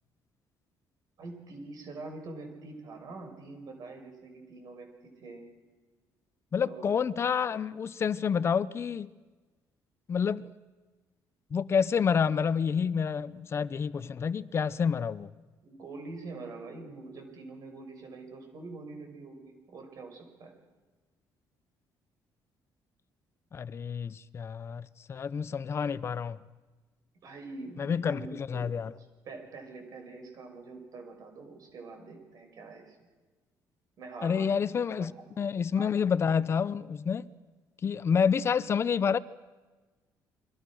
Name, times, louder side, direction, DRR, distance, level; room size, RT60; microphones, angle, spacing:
voice 1, 1.2-5.5 6.6-6.9 15.6-20.5 27.2-28.7 29.2-33.0 34.0-34.6 34.9-35.1 35.8-35.9, right 3 dB, 55° right, 6.1 m, -45 dB
voice 2, 6.5-9.1 10.1-10.5 11.5-15.3 23.5-26.4 27.8-28.9 34.2-35.1 35.4-37.3 37.8-39.2, left 6 dB, 35° left, 0.8 m, -28 dB
29.5 x 23.5 x 6.4 m
cardioid pair, 130°, 7 cm